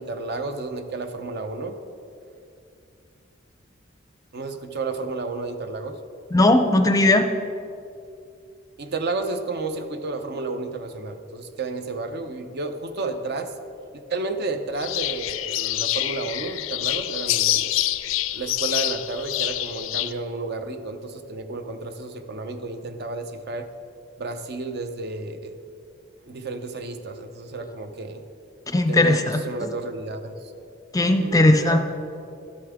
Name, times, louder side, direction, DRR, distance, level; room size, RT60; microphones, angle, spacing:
voice 1, 0.0-1.8 4.3-6.0 8.8-13.5 14.1-17.7 18.3-23.7 24.2-25.5 26.3-28.2 28.9-30.4 31.2-31.8, right 3 dB, 55° right, 8 dB, 0.7 m, -31 dB
voice 2, 6.3-7.3 28.7-29.4 30.9-31.8, left 2 dB, 15° left, 7 dB, 0.5 m, -18 dB
sound 1, 14.8-20.1, left 14 dB, 80° left, 0.4 m, -26 dB
12.5 x 8.4 x 3.5 m, 2.5 s
head